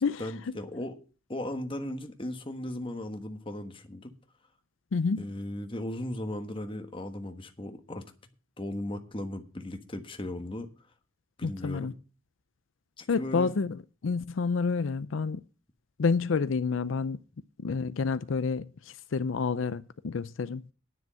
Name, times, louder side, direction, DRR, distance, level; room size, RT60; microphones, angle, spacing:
voice 1, 0.2-1.0 1.3-4.1 5.2-8.1 8.6-10.7 11.4-12.0 13.0-13.5, left 1 dB, 25° left, 1.3 m, -37 dB
voice 2, 4.9-5.3 11.4-11.9 13.1-13.8 14.0-15.4 16.0-17.2 17.6-20.7, left 5 dB, 75° left, 0.5 m, -29 dB
10.0 x 6.2 x 8.8 m
head